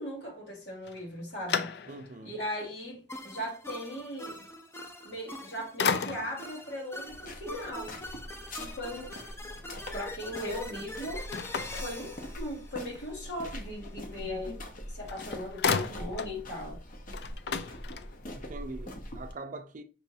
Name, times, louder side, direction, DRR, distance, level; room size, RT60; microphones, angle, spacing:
voice 1, 0.0-1.7 2.2-4.5 5.0-8.0 8.5-9.2 9.9-11.2 11.7-14.6 14.9-16.8, equal, 85° left, 1.9 m, -38 dB
sound 1, 0.8-2.3 2.8-2.9 5.1-5.5 5.8-6.5 11.3-12.6 14.7-14.8 15.1-16.4 16.7-16.8 17.1-18.4, left 6 dB, 65° left, 0.4 m, -33 dB
voice 2, 1.9-2.3 18.3-19.8, right 2 dB, 45° right, 0.5 m, -43 dB
sound 2, 3.1-13.5, left 1 dB, 15° left, 0.5 m, -44 dB
sound 3, 7.1-19.3, left 1 dB, 50° left, 0.8 m, -43 dB
6.1 x 3.1 x 2.7 m
head